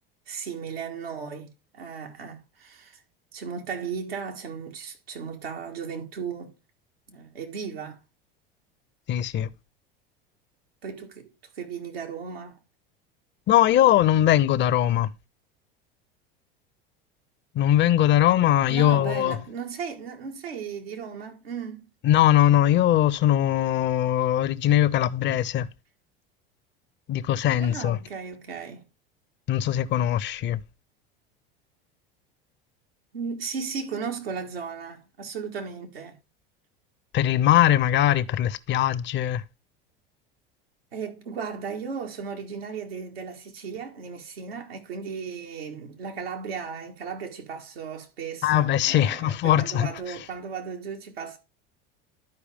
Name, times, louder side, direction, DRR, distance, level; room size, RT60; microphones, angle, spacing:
voice 1, 0.3-3.0 3.3-6.5 7.1-8.0 10.8-12.6 18.7-21.9 27.6-28.8 33.1-36.2 40.9-51.4, right 6 dB, 90° right, 1.8 m, -36 dB
voice 2, 9.1-9.5 13.5-15.1 17.5-19.4 22.0-25.7 27.1-28.0 29.5-30.6 37.1-39.4 48.4-49.9, left 12 dB, 40° left, 0.6 m, -21 dB
12.0 x 4.8 x 3.5 m
hypercardioid pair, 85°, 29 cm